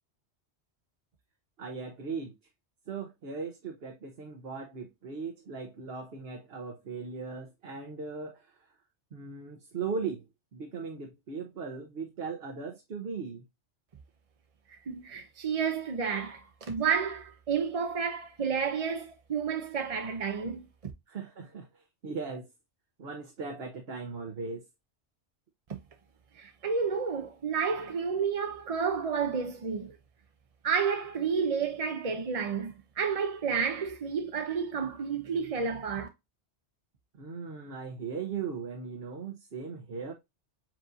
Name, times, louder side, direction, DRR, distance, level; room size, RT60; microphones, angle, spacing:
voice 1, 1.6-2.3 2.9-8.6 9.1-10.2 10.5-13.4 21.1-22.5 23.0-24.6 37.2-40.1, right 5 dB, 60° right, 1.1 m, -38 dB
voice 2, 14.7-20.6 26.4-30.0 30.6-36.1, right 6 dB, 40° right, 0.5 m, -31 dB
7.4 x 2.6 x 2.6 m
omnidirectional pair, 1.2 m